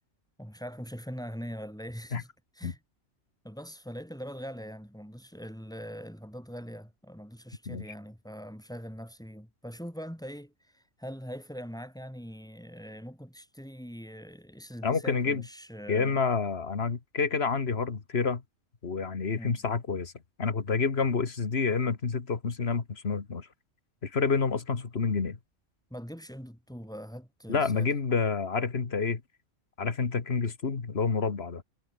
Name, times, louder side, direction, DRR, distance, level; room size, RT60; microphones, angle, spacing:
voice 1, 0.4-2.3 2.5-2.8 3.4-16.2 19.4-19.6 25.9-27.9, equal, 5° left, 6.8 m, -42 dB
voice 2, 14.8-15.4 15.9-18.4 18.8-20.1 20.4-23.5 24.0-25.4 27.5-29.2 29.8-31.6, left 5 dB, 55° left, 2.0 m, -28 dB
omnidirectional pair, 1.3 m